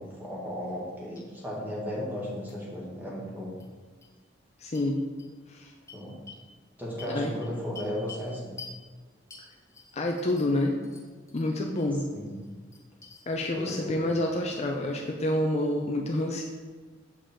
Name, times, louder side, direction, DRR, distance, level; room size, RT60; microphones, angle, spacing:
voice 1, 0.0-3.6 5.9-6.2 6.8-8.5 12.1-12.4 13.5-14.1, equal, 10° right, -5 dB, 1.8 m, -35 dB
sound 1, 0.6-0.9 1.2-1.3 2.5-2.6 3.6-3.7 4.0-4.1 4.7-4.9 5.2-5.3 5.9-6.4 7.0-8.3 8.6-8.8 9.3-10.6 10.8-11.9 12.3-13.2, left 4 dB, 15° left, 1.0 m, -48 dB
voice 2, 4.6-5.0 5.5-5.7 7.1-7.3 9.9-10.8 11.3-12.1 13.3-16.4, left 1 dB, 35° left, 1 dB, 0.5 m, -28 dB
7.0 x 5.4 x 3.6 m, 1.4 s
head